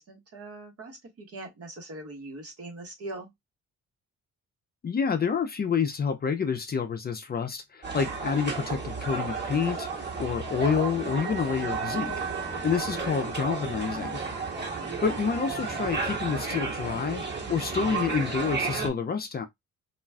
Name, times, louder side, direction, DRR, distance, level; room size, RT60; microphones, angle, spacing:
voice 1, 0.0-3.3 15.6-15.7, right 2 dB, 50° right, 1.2 m, -41 dB
voice 2, 4.8-14.2 14.8-17.2 17.5-19.5, left 6 dB, 30° left, 0.5 m, -28 dB
sound 1, 7.8-18.9, right 4 dB, 35° right, 1.4 m, -32 dB
2.4 x 2.2 x 3.3 m
cardioid pair, 90°, 30 cm